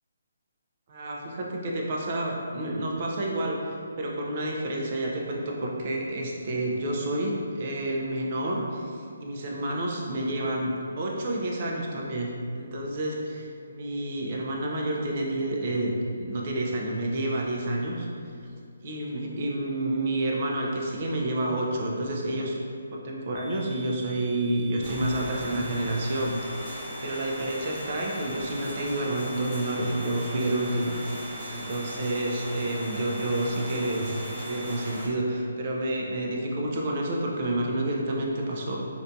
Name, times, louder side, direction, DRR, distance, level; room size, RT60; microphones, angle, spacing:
voice 1, 0.9-17.9 18.8-22.6 23.0-26.7 27.0-30.9 31.5-38.8, right 1 dB, 40° right, -2 dB, 0.4 m, -29 dB
sound 1, 23.4-34.8, right 3 dB, 35° left, 0.5 m, -48 dB
sound 2, 24.8-35.1, equal, 15° left, 0.9 m, -38 dB
2.5 x 2.2 x 2.5 m, 2.4 s
hypercardioid pair, 160°, 0 cm